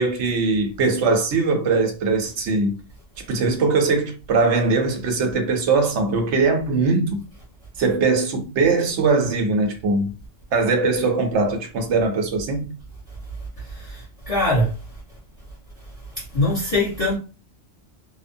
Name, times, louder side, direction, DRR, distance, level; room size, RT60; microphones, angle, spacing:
voice 1, 0.0-2.8 3.3-7.2 7.8-10.1 10.5-12.7, right 3 dB, 75° right, 1.0 m, -21 dB
voice 2, 13.7-14.7 16.2-17.2, left 1 dB, 30° left, 1.1 m, -22 dB
2.8 x 2.0 x 2.6 m
omnidirectional pair, 1.2 m